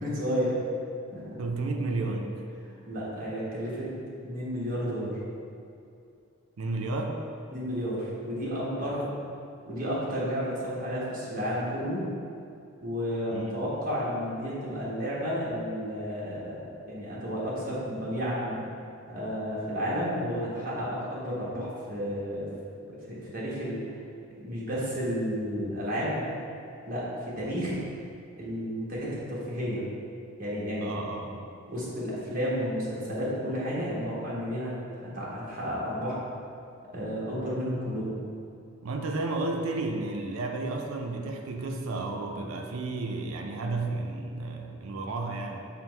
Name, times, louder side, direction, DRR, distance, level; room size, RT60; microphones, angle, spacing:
voice 1, 0.0-0.6 1.1-1.4 2.9-3.9 4.2-5.2 7.5-9.1 9.7-12.1 12.8-18.6 19.1-22.5 22.9-23.8 24.4-26.2 26.9-27.8 28.3-29.8 30.4-31.0 31.7-36.2 36.9-38.2, equal, 45° right, -7 dB, 1.1 m, -32 dB
voice 2, 1.4-2.4 6.6-7.2 8.8-9.0 13.3-13.6 30.8-31.5 38.8-45.7, right 2 dB, 85° right, 3 dB, 0.5 m, -32 dB
5.7 x 2.1 x 4.4 m, 2.5 s
head